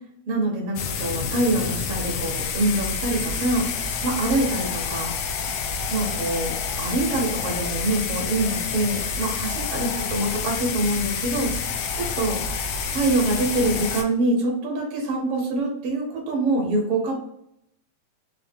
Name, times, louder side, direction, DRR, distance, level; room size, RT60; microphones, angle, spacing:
voice 1, 0.3-3.7 4.0-5.1 5.9-12.4 12.9-17.1, right 2 dB, 55° right, -1 dB, 1.7 m, -25 dB
sound 1, 0.8-14.0, left 5 dB, 85° left, 1.4 m, -28 dB
4.8 x 2.0 x 3.4 m, 0.76 s
omnidirectional pair, 3.4 m